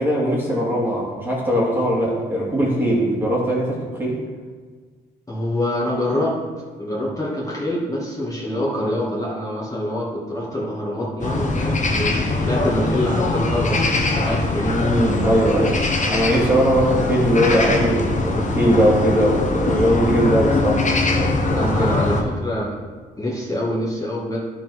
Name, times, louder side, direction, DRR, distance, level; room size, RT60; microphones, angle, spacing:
voice 1, 0.0-4.2 14.6-15.8 16.1-22.0, equal, 10° right, -5 dB, 2.2 m, -20 dB
voice 2, 5.3-6.3 6.8-14.7 21.5-22.7 23.2-24.4, left 1 dB, 15° left, -6 dB, 2.1 m, -25 dB
sound 1, 11.2-22.2, left 2 dB, 40° left, 1.2 m, -22 dB
10.5 x 4.1 x 4.7 m, 1.5 s
cardioid pair, 90°, 20 cm